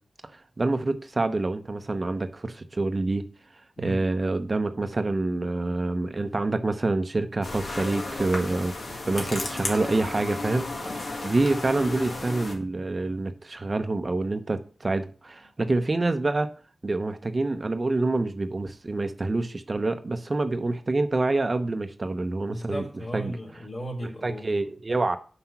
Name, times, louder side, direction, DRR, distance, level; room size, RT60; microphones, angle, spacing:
voice 1, 0.3-3.2 3.8-8.7 9.1-16.5 16.8-22.8 23.1-23.4 24.2-25.2, right 2 dB, 45° right, 0.7 m, -27 dB
sound 1, 7.4-12.5, left 2 dB, 75° left, 1.8 m, -33 dB
voice 2, 22.5-24.7, right 1 dB, 50° left, 2.6 m, -36 dB
5.8 x 5.8 x 5.8 m
cardioid pair, 60°, 0 cm